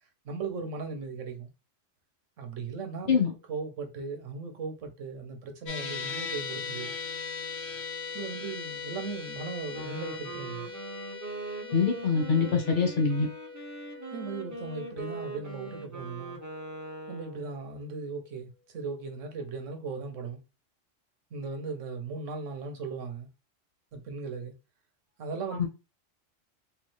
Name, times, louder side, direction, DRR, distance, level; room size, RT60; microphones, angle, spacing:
voice 1, 0.2-1.5 2.4-3.2 3.5-6.9 8.1-10.7 14.1-16.4 17.1-20.4 21.3-23.3 23.9-24.5 25.2-25.7, right 4 dB, 90° right, 1.2 m, -37 dB
sound 1, 5.7-18.0, left 5 dB, 65° left, 1.1 m, -40 dB
Wind instrument woodwind instrument, 9.6-17.5, right 2 dB, 15° right, 0.7 m, -41 dB
voice 2, 11.7-13.3 25.6-25.7, left 5 dB, 45° left, 1.2 m, -24 dB
3.2 x 3.2 x 3.2 m
omnidirectional pair, 1.2 m